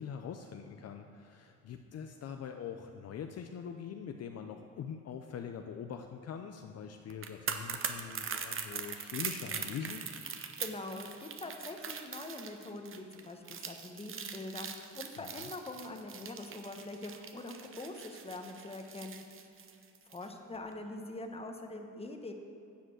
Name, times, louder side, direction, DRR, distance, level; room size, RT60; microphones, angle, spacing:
voice 1, 0.0-10.0 15.4-15.5, left 7 dB, 55° left, 5 dB, 0.6 m, -43 dB
sound 1, 7.1-20.3 20.5-20.7, right 7 dB, 45° right, 0.8 m, -41 dB
voice 2, 10.6-19.2 20.1-22.3, left 2 dB, 20° left, 4 dB, 1.1 m, -43 dB
10.0 x 5.1 x 7.8 m, 2.6 s
cardioid pair, 90°, 30 cm